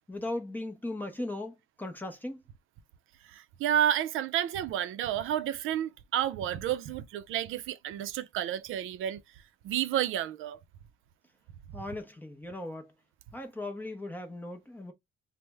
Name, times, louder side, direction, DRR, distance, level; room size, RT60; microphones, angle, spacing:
voice 1, 0.1-2.4 11.7-12.9 13.3-14.9, left 1 dB, 10° left, 0.5 m, -38 dB
voice 2, 3.3-9.2 9.6-10.6, right 10 dB, 75° right, 0.4 m, -30 dB
3.2 x 2.0 x 3.2 m
cardioid pair, 175°, 21 cm